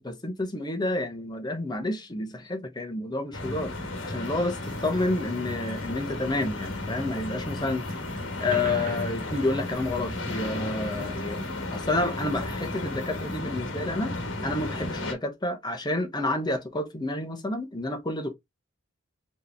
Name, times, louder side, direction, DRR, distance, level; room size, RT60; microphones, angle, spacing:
voice 1, 0.0-3.7 4.0-7.9 8.4-14.2 14.4-18.3, left 2 dB, 20° left, 0.8 m, -29 dB
sound 1, 3.3-15.1, left 2 dB, 60° left, 1.3 m, -33 dB
sound 2, 4.6-13.4, right 3 dB, 40° right, 1.0 m, -49 dB
4.6 x 3.0 x 3.3 m
head